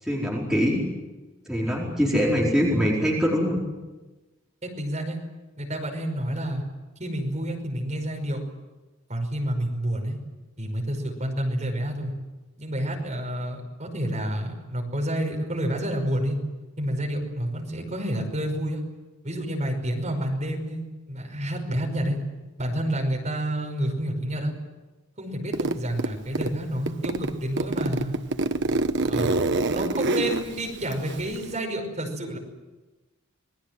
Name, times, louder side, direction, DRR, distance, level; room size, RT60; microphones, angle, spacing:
voice 1, 0.0-0.8 1.5-3.6, equal, 5° right, -5 dB, 4.7 m, -23 dB
voice 2, 4.6-5.2 5.6-6.6 7.0-8.4 9.1-10.2 10.6-12.1 12.6-16.4 16.8-18.8 19.2-22.2 22.6-24.5 25.2-28.2 29.1-29.3 29.7-32.4, right 1 dB, 35° right, 1 dB, 5.5 m, -29 dB
Zipper (clothing), 25.5-26.5 26.9-31.6, right 2 dB, 55° right, 1.0 m, -26 dB
28.0 x 20.5 x 7.7 m, 1.2 s
head